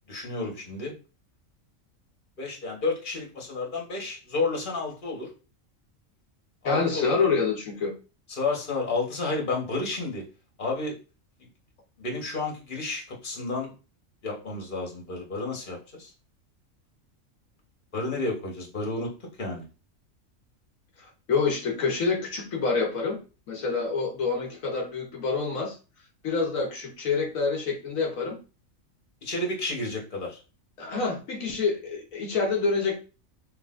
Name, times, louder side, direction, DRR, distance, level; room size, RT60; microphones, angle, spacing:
voice 1, 0.1-0.9 2.4-5.3 6.6-7.2 8.3-10.2 10.6-10.9 12.0-13.7 14.2-16.1 17.9-19.1 19.4-19.6 29.2-30.4, left 3 dB, 40° left, 0 dB, 1.4 m, -31 dB
voice 2, 6.6-7.9 21.3-23.2 23.5-25.8 26.2-28.4 30.8-33.0, left 4 dB, 80° left, 1 dB, 1.3 m, -27 dB
5.5 x 3.3 x 2.5 m, 0.33 s
omnidirectional pair, 1.4 m